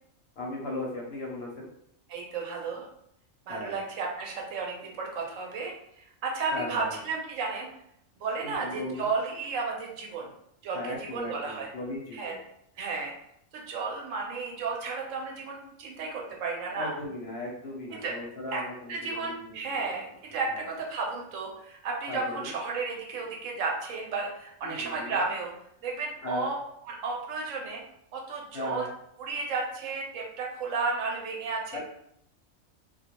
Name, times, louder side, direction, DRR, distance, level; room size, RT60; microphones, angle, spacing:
voice 1, 0.4-1.7 3.5-3.8 6.5-7.0 8.4-9.1 10.7-12.4 16.7-20.0 20.3-20.6 22.1-22.5 24.6-25.2 26.2-26.5 28.5-28.9 31.7-31.8, left 2 dB, 65° left, -2 dB, 0.7 m, -37 dB
voice 2, 2.1-2.8 3.5-7.7 8.2-10.3 10.6-11.7 12.1-12.3 12.8-13.1 13.5-16.9 17.9-18.1 18.5-18.6 18.9-25.5 25.8-26.6 26.9-27.8 28.1-28.9 29.2-31.8, right 4 dB, 75° right, -1 dB, 0.9 m, -33 dB
2.2 x 2.2 x 2.8 m, 0.74 s
omnidirectional pair, 1.4 m